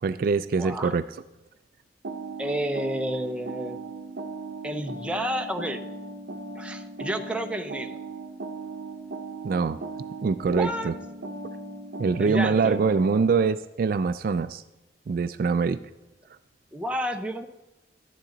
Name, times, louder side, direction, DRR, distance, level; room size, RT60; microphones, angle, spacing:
voice 1, 0.0-1.0 9.4-9.8 10.2-10.9 12.0-14.6 15.1-15.8, right 5 dB, 55° right, 13 dB, 0.3 m, -24 dB
voice 2, 0.5-0.9 2.4-3.8 4.6-5.8 6.6-8.0 10.5-10.9 12.2-12.8 16.7-17.5, equal, 5° right, 5 dB, 0.7 m, -30 dB
sound 1, 2.0-13.3, right 2 dB, 80° right, 0.7 m, -38 dB
12.5 x 10.0 x 3.9 m, 0.99 s
head